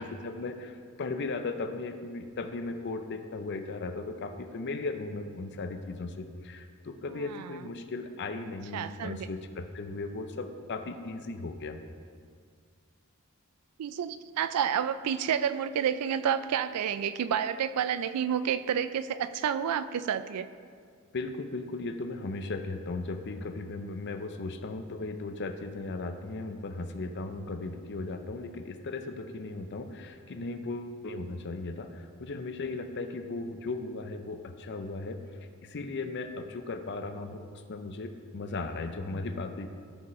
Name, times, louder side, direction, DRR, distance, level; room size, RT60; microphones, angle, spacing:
voice 1, 0.0-11.8 21.1-35.2 35.6-39.7, left 3 dB, 50° left, 7 dB, 0.5 m, -37 dB
voice 2, 7.1-7.5 8.7-9.2 13.8-20.5, right 8 dB, 90° right, 13 dB, 0.3 m, -30 dB
13.0 x 5.0 x 3.1 m, 2.1 s
head